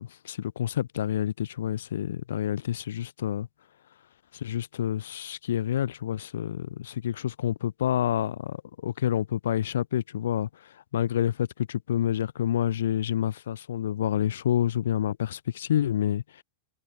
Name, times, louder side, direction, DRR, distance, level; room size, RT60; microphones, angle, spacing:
voice 1, 0.0-3.5 4.3-10.5 10.9-16.2, left 11 dB, 60° left, 0.4 m, -28 dB
figure-of-eight pair, 90°, 0 cm